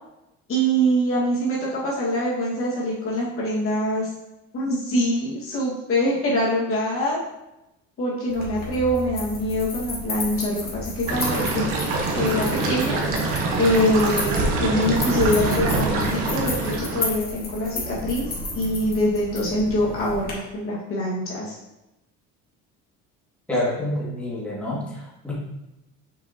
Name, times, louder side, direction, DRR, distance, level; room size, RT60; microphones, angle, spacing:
voice 1, 0.5-4.1 4.5-7.2 8.0-11.6 12.1-13.3 13.6-18.3 18.5-21.6, equal, 45° left, -6 dB, 2.2 m, -24 dB
sound 1, 8.3-20.3, left 2 dB, 30° left, 2.2 m, -33 dB
sound 2, 11.1-17.1, right 3 dB, 85° right, 1.5 m, -24 dB
voice 2, 23.5-25.3, left 1 dB, 5° left, -7 dB, 2.5 m, -27 dB
6.7 x 5.8 x 3.1 m, 0.92 s
cardioid pair, 115°, 31 cm